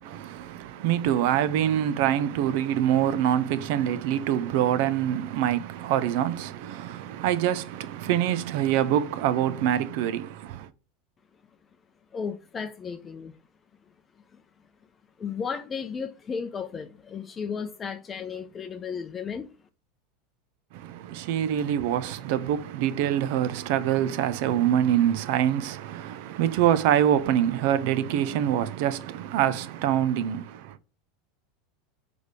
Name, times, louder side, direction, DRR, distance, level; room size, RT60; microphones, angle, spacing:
voice 1, 0.0-10.7 20.7-30.8, right 10 dB, 55° right, 0.5 m, -25 dB
voice 2, 12.1-13.4 14.3-14.4 15.2-19.5, left 6 dB, 25° left, 0.6 m, -34 dB
6.4 x 3.4 x 4.9 m
figure-of-eight pair, 80°, 0 cm